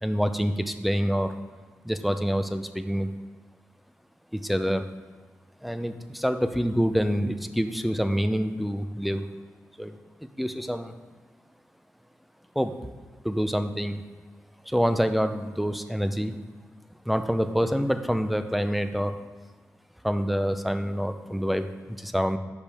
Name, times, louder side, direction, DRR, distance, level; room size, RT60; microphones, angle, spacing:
voice 1, 0.0-1.3 1.8-3.1 4.3-4.9 5.6-9.3 9.8-10.0 10.4-10.9 12.6-12.7 13.2-14.0 14.7-16.4 17.1-19.2 20.0-22.4, equal, ahead, 9 dB, 0.4 m, -26 dB
6.7 x 5.1 x 3.5 m, 1.4 s
cardioid pair, 70°, 6 cm